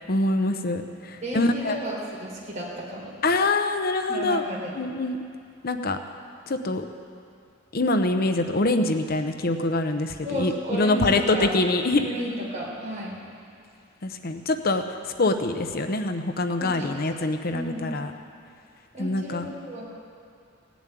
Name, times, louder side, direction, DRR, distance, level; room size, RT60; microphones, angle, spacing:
voice 1, 0.0-1.8 3.2-4.4 4.7-5.2 5.6-6.0 6.5-6.8 7.7-12.1 14.0-14.8 15.2-18.1 19.0-19.5, left 2 dB, 50° left, 7 dB, 0.8 m, -24 dB
voice 2, 1.2-3.1 4.1-4.7 10.2-11.5 12.0-13.2 16.6-17.1 17.5-17.9 18.9-19.9, equal, 40° right, -5 dB, 4.2 m, -33 dB
16.5 x 7.2 x 10.0 m, 2.3 s
head